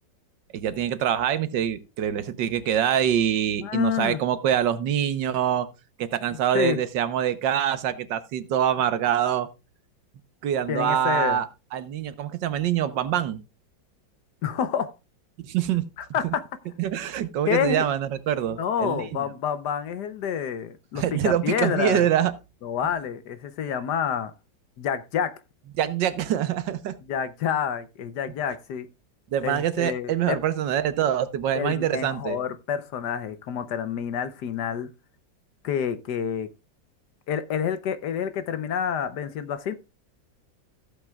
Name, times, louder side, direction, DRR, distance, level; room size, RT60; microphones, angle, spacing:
voice 1, 0.5-5.7 6.0-9.5 10.4-11.5 11.7-13.4 15.4-15.8 16.2-16.3 16.8-19.2 20.9-22.3 25.8-27.0 29.3-32.4, right 10 dB, 75° right, 1.5 m, -25 dB
voice 2, 3.6-4.2 6.5-6.8 10.7-11.4 14.4-14.9 16.0-16.4 17.5-17.8 18.6-22.0 22.6-24.3 24.8-25.4 27.1-28.9 29.4-30.4 31.5-34.9 35.6-36.5 37.3-39.7, left 8 dB, 65° left, 1.3 m, -28 dB
15.0 x 7.8 x 2.3 m
omnidirectional pair, 2.0 m